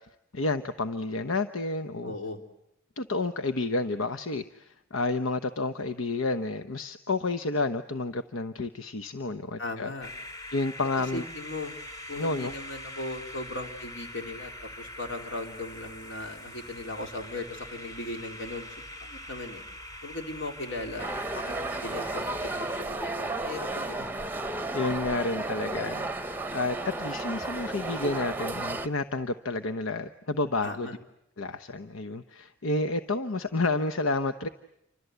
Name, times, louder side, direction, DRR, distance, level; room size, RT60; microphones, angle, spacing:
voice 1, 0.3-2.1 3.0-9.9 10.5-11.2 12.2-12.5 24.7-30.9 31.4-34.5, left 3 dB, 85° left, 10 dB, 1.0 m, -30 dB
voice 2, 2.0-2.4 9.6-10.1 11.1-11.7 12.1-18.8 19.0-19.6 20.0-24.1 30.6-31.0, left 2 dB, 65° left, 4 dB, 3.9 m, -38 dB
Scary Ambience, 10.0-22.8, left 1 dB, 20° left, 2.1 m, -43 dB
sound 1, 21.0-28.9, right 2 dB, 10° right, 1.0 m, -33 dB
29.0 x 25.5 x 8.1 m, 0.82 s
head